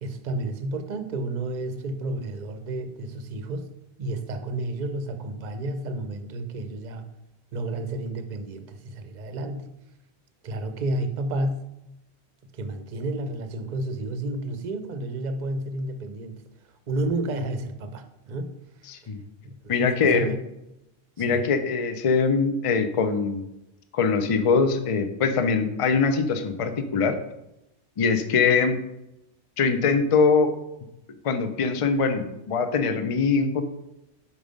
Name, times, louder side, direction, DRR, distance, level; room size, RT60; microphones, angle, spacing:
voice 1, 0.0-3.7 4.0-7.1 7.5-9.7 10.4-11.7 12.5-16.4 16.9-18.6 19.4-20.4 21.2-21.5, right 1 dB, 50° right, 8 dB, 0.7 m, -31 dB
voice 2, 18.9-19.2 19.7-20.3 21.2-23.5 23.9-27.2 28.0-28.8 29.6-30.5 31.2-33.6, left 5 dB, 40° left, 8 dB, 0.5 m, -22 dB
5.3 x 4.7 x 5.2 m, 0.88 s
omnidirectional pair, 1.1 m